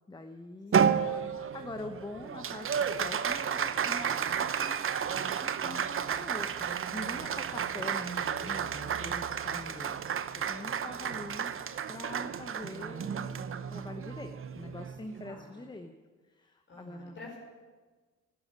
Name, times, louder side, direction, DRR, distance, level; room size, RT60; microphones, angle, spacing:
voice 1, 0.1-0.9 1.3-10.0 10.4-11.5 11.9-15.9 16.2-17.3, left 2 dB, 15° left, 6 dB, 1.0 m, -44 dB
Applause, 0.7-15.4, right 7 dB, 45° right, 0.9 m, -32 dB
voice 2, 0.8-1.1 15.2-15.7 16.7-17.4, left 2 dB, 40° left, -2 dB, 5.3 m, -49 dB
12.0 x 10.5 x 9.7 m, 1.4 s
cardioid pair, 90°, 30 cm